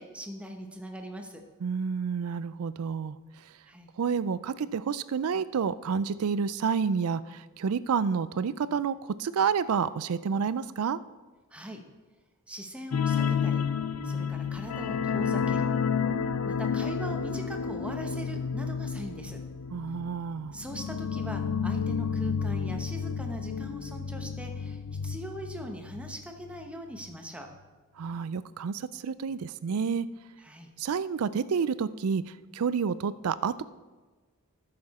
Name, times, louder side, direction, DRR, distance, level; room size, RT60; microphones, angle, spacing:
voice 1, 0.0-1.4 3.7-3.9 11.5-11.8 12.5-13.7 14.0-15.7 16.4-19.4 20.5-27.5 30.4-30.7, equal, 5° right, 3 dB, 1.0 m, -41 dB
voice 2, 1.6-3.2 4.0-11.0 19.7-20.6 28.0-30.1 30.8-33.6, right 6 dB, 90° right, 16 dB, 0.4 m, -29 dB
sound 1, 12.9-26.2 26.5-26.7 27.0-27.1, left 6 dB, 80° left, 0.5 m, -31 dB
13.5 x 6.9 x 4.2 m, 1.3 s
head